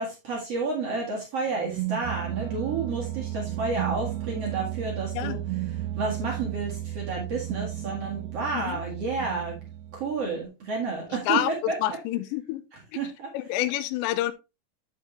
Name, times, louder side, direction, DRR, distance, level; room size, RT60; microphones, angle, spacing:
voice 1, 0.0-5.4 6.0-9.6 9.9-11.8 13.0-13.3, right 4 dB, 50° right, 2.0 m, -30 dB
sound 1, 1.5-10.3, right 13 dB, 85° right, 2.7 m, -34 dB
voice 2, 11.3-12.6 13.3-14.3, left 14 dB, 90° left, 2.9 m, -28 dB
8.7 x 6.7 x 3.2 m
omnidirectional pair, 5.1 m